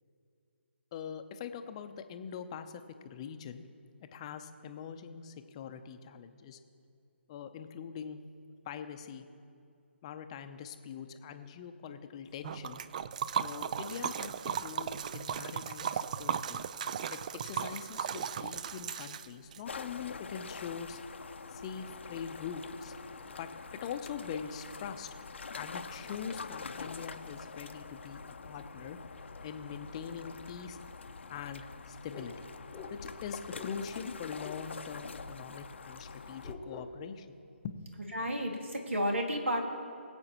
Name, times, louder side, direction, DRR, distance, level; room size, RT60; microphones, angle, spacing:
voice 1, 0.9-3.7 4.1-6.6 7.3-8.2 8.6-9.3 10.0-12.8 13.4-16.6 17.1-21.0 21.5-22.9 23.4-25.1 25.5-29.0 29.4-30.8 31.3-32.5 32.9-37.4 37.6-37.9, left 7 dB, 30° left, 8 dB, 0.6 m, -43 dB
Liquid, 12.4-19.6, right 8 dB, 35° right, 0.3 m, -36 dB
sound 1, 19.7-36.5, left 4 dB, 70° left, 0.7 m, -45 dB
sound 2, 32.1-32.3 32.7-32.9 33.5-33.7 34.3-34.6 35.6-35.7 36.4-36.9, left 5 dB, 5° left, 1.1 m, -46 dB
voice 2, 38.1-39.7, equal, 80° right, 2 dB, 2.0 m, -31 dB
22.0 x 7.8 x 3.0 m, 2.5 s
figure-of-eight pair, 150°, 7 cm